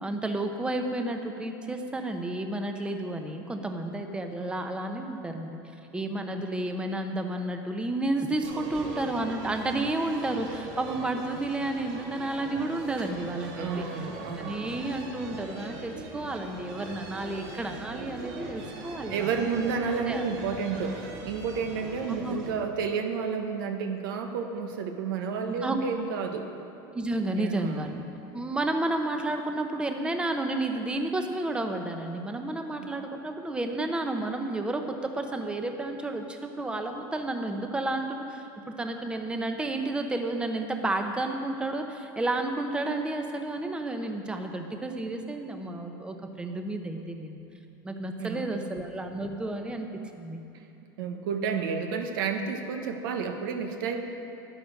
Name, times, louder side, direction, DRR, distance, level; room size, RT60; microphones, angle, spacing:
voice 1, 0.0-5.6 5.9-13.9 14.4-19.3 20.1-20.3 22.2-22.4 25.6-25.8 26.9-28.0 28.3-47.4 47.8-49.9 50.2-50.4, right 2 dB, 10° right, 5 dB, 0.8 m, -31 dB
sound 1, 8.4-22.5, right 2 dB, 65° right, 2.2 m, -41 dB
voice 2, 13.6-14.6 19.1-26.5 27.3-27.9 32.8-32.9 48.2-48.8 51.0-54.0, right 5 dB, 85° right, 5 dB, 1.3 m, -31 dB
11.5 x 10.0 x 6.4 m, 2.8 s
supercardioid pair, 135°, 11 cm